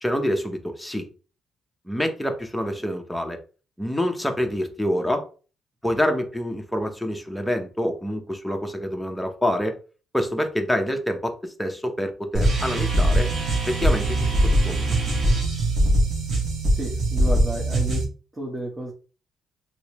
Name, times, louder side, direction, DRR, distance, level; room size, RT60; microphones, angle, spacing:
voice 1, 0.0-1.0 1.9-3.4 3.8-5.2 5.8-9.8 10.1-13.3 13.7-14.3 14.6-14.8, equal, ahead, 4 dB, 0.7 m, -26 dB
sound 1, 12.3-18.0, right 1 dB, 50° right, 1.4 m, -21 dB
voice 2, 16.7-18.0 18.3-18.9, right 1 dB, 20° right, -2 dB, 1.1 m, -32 dB
3.0 x 3.0 x 2.9 m, 0.36 s
cardioid pair, 95°, 0 cm